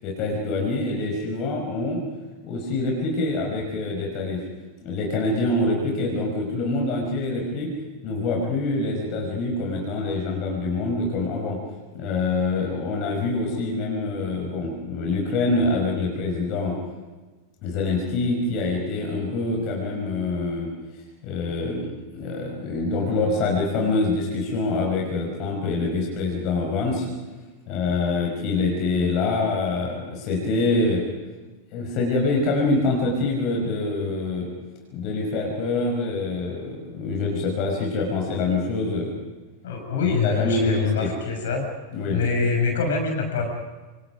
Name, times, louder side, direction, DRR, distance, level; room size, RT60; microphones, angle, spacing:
voice 1, 0.0-2.0 2.4-4.4 4.8-7.7 8.0-11.6 11.9-16.8 17.6-20.7 21.2-21.9 22.1-27.1 27.7-31.0 31.7-34.5 34.9-39.1 40.0-41.1 41.9-42.2, left 3 dB, 40° left, -1 dB, 5.5 m, -25 dB
voice 2, 39.6-41.7 42.0-43.5, left 4 dB, 60° left, 3 dB, 6.7 m, -24 dB
28.0 x 27.0 x 5.2 m, 1.3 s
figure-of-eight pair, 90°, 0 cm